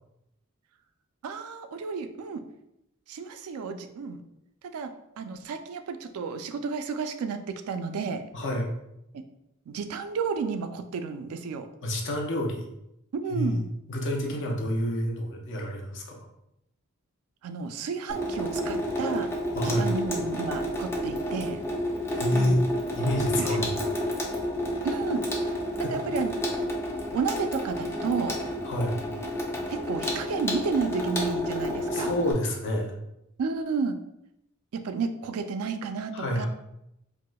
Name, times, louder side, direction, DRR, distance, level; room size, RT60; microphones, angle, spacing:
voice 1, 1.2-2.4 3.1-4.2 4.7-4.9 5.2-8.2 9.1-9.2 9.7-11.7 13.1-13.6 17.4-19.3 19.6-21.6 22.3-22.6 23.4-23.7 24.8-25.3 25.9-26.3 27.1-28.4 29.7-32.1 33.4-34.0 34.7-36.5, right 5 dB, 75° right, 8 dB, 0.3 m, -32 dB
voice 2, 8.3-8.7 11.8-12.6 13.3-16.0 19.5-19.9 22.1-22.7 22.9-23.8 25.8-25.9 28.6-29.0 31.9-32.9 36.1-36.5, equal, 55° left, 0 dB, 0.6 m, -28 dB
Water tap faucet / Sink (filling or washing), 18.1-32.3, equal, 10° left, 0.4 m, -30 dB
4.7 x 2.1 x 2.2 m, 0.83 s
head